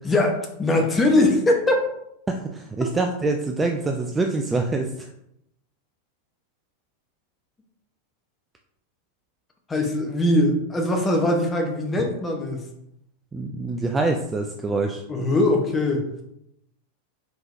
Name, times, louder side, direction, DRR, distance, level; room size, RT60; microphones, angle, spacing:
voice 1, 0.0-1.9 9.7-12.7 15.1-16.0, left 1 dB, 15° left, 2 dB, 0.9 m, -21 dB
voice 2, 2.3-5.1 13.3-15.0, right 3 dB, 15° right, 3 dB, 0.4 m, -25 dB
4.7 x 3.8 x 2.6 m, 0.78 s
figure-of-eight pair, 90°, 0 cm